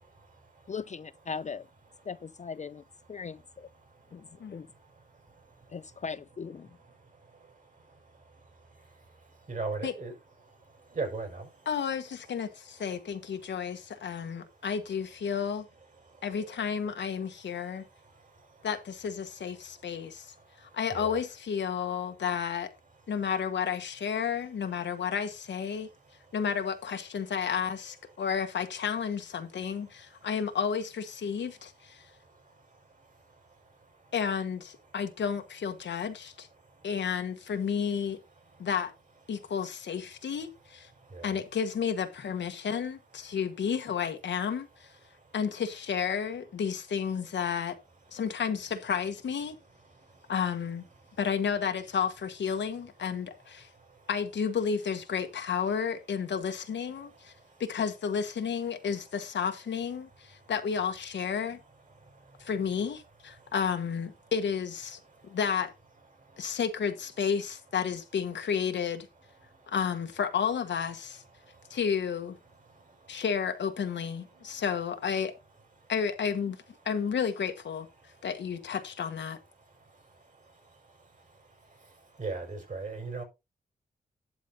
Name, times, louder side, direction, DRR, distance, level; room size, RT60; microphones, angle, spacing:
voice 1, 0.7-1.7 2.1-2.8 3.1-3.7 4.1-4.7 5.7-6.8, left 5 dB, 40° left, 0.5 m, -39 dB
voice 2, 9.5-10.1 10.9-11.4 20.9-21.2 41.1-41.3 82.2-83.2, right 4 dB, 45° right, 6.2 m, -35 dB
voice 3, 11.7-15.7 16.2-17.8 18.6-20.3 20.6-22.7 23.1-25.9 26.3-32.0 34.1-36.5 36.8-38.2 38.6-38.9 39.3-40.9 41.2-44.9 45.3-47.8 48.1-49.5 50.3-50.8 51.2-53.7 54.1-57.3 57.6-61.6 62.4-65.7 66.4-69.1 69.7-71.2 71.7-72.4 73.1-75.3 75.9-76.6 76.8-77.9 78.2-79.4, left 7 dB, 85° left, 1.4 m, -31 dB
11.5 x 4.1 x 5.4 m
wide cardioid pair, 90°, 18 cm